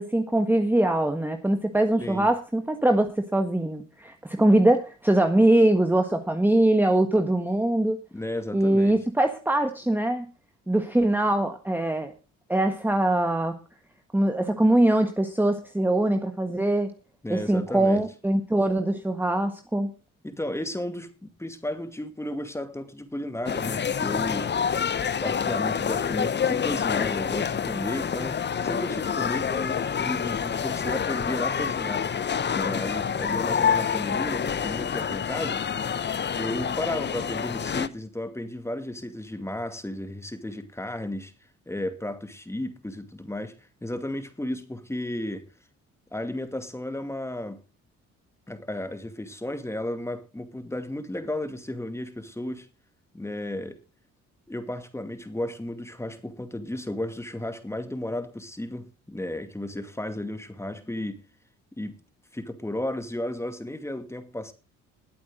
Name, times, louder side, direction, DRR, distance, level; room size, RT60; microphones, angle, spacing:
voice 1, 0.0-8.0 8.5-10.2 10.7-12.1 12.5-13.5 14.1-16.9 17.3-19.9, right 1 dB, 5° right, 1.5 m, -22 dB
voice 2, 8.1-9.0 17.2-18.0 20.2-24.5 25.2-32.0 32.5-35.6 36.3-41.3 41.7-43.6 43.8-45.4 46.1-47.6 48.5-52.7 53.1-53.8 54.5-61.2 61.8-62.0 62.3-64.5, left 1 dB, 10° left, 2.4 m, -33 dB
sound 1, 23.5-37.9, left 7 dB, 35° left, 0.9 m, -27 dB
20.5 x 8.6 x 3.8 m
cardioid pair, 90°, 30 cm